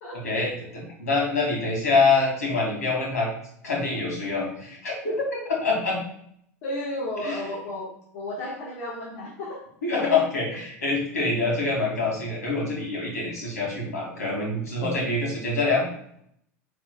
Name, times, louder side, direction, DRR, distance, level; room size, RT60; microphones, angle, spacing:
voice 1, 0.2-3.3 3.6-6.0 7.2-7.4 9.8-15.8, left 3 dB, 90° left, -3 dB, 2.6 m, -25 dB
voice 2, 6.6-7.9 8.1-9.6, left 1 dB, 65° left, -5 dB, 1.6 m, -33 dB
9.1 x 4.3 x 2.4 m, 0.69 s
hypercardioid pair, 90°, 8 cm